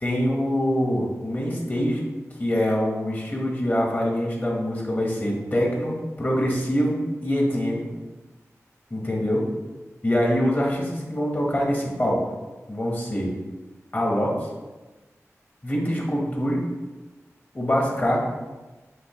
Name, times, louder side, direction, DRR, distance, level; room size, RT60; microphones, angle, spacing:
voice 1, 0.0-2.0 2.4-7.9 8.9-9.4 10.0-12.2 12.7-13.3 13.9-14.5 15.6-16.6 17.5-18.2, equal, 35° left, -2 dB, 1.2 m, -24 dB
5.1 x 3.2 x 3.0 m, 1.2 s
wide cardioid pair, 55°, 6 cm